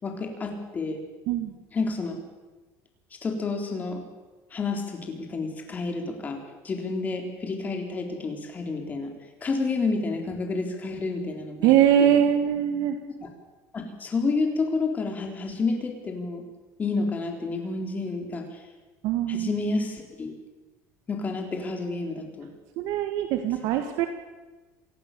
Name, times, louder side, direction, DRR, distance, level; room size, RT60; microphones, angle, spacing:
voice 1, 0.0-1.0 1.7-2.2 3.2-4.0 4.5-9.1 9.4-12.2 13.2-13.3 13.7-16.5 16.8-18.6 19.3-20.3 21.1-22.5, left 3 dB, 25° left, 3 dB, 4.1 m, -30 dB
voice 2, 11.6-13.0 19.0-19.5 22.8-24.1, right 10 dB, 65° right, 7 dB, 1.8 m, -22 dB
27.0 x 18.5 x 6.9 m, 1.2 s
cardioid pair, 145°, 7 cm